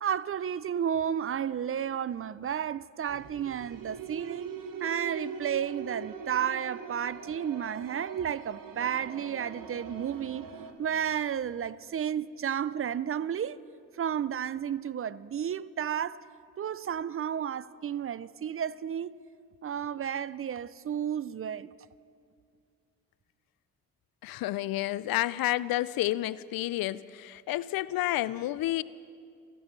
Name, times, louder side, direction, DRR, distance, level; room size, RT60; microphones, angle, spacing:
voice 1, 0.0-4.5 4.8-10.5 10.8-13.6 14.0-16.2 16.6-19.1 19.6-21.7, right 9 dB, 35° right, 0.4 m, -32 dB
sound 1, 3.1-10.7, right 5 dB, 60° right, 1.4 m, -42 dB
voice 2, 24.2-28.8, left 15 dB, 70° left, 0.5 m, -30 dB
28.5 x 12.5 x 3.2 m
supercardioid pair, 50°, 38 cm